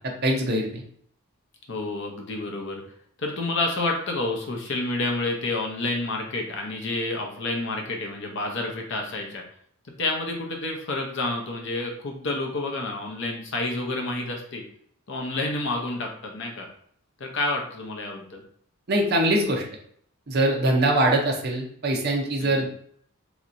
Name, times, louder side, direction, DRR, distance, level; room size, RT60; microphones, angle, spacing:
voice 1, 0.2-0.8 18.9-19.6 20.3-22.7, right 1 dB, 50° right, 1 dB, 0.6 m, -22 dB
voice 2, 1.7-2.8 3.2-9.4 10.0-14.6 15.1-16.7 17.2-18.4 22.4-22.7, left 2 dB, 55° left, 1 dB, 0.7 m, -29 dB
3.2 x 2.8 x 2.5 m, 0.64 s
head